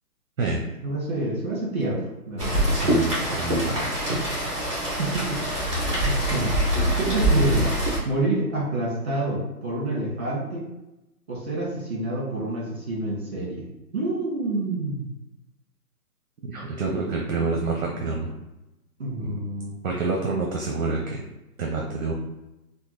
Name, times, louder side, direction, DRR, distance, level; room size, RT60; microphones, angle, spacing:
voice 1, 0.8-2.7 5.0-5.4 6.0-6.6 7.0-7.7 8.0-10.6 11.3-13.7 13.9-15.1 19.0-19.7, right 2 dB, 45° right, -3 dB, 1.4 m, -28 dB
Rain, 2.4-8.0, right 1 dB, 20° right, 0.8 m, -24 dB
voice 2, 2.7-4.2 16.5-18.3 19.3-19.4 19.8-21.2 21.6-22.1, right 3 dB, 60° right, 0 dB, 0.7 m, -28 dB
3.5 x 2.2 x 3.1 m, 0.96 s
hypercardioid pair, 170°, 46 cm